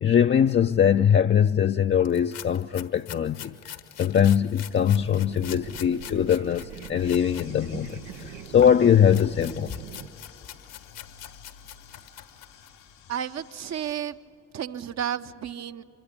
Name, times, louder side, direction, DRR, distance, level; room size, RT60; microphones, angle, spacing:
voice 1, 0.0-9.8, left 8 dB, 35° left, 0.5 m, -22 dB
sound 1, 2.0-7.5 7.9-12.8, left 11 dB, 70° left, 1.3 m, -44 dB
sound 2, 4.8-10.1, right 8 dB, 90° right, 0.7 m, -42 dB
sound 3, 7.0-14.0, left 8 dB, 90° left, 2.9 m, -52 dB
voice 2, 13.1-14.2 14.5-15.8, right 9 dB, 50° right, 0.9 m, -32 dB
25.0 x 23.0 x 8.5 m
hypercardioid pair, 50°, 35 cm